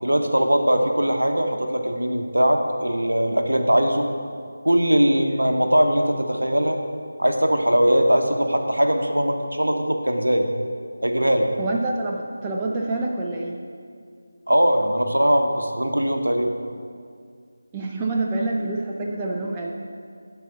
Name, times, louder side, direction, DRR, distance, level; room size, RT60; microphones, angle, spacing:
voice 1, 0.0-4.1 4.6-6.8 7.2-10.5 11.0-11.5 14.5-16.5, equal, 70° right, 4 dB, 0.9 m, -20 dB
voice 2, 11.6-13.6 17.7-19.7, right 2 dB, 15° right, -1 dB, 0.4 m, -26 dB
10.5 x 4.2 x 5.8 m, 2.2 s
figure-of-eight pair, 160°, 0 cm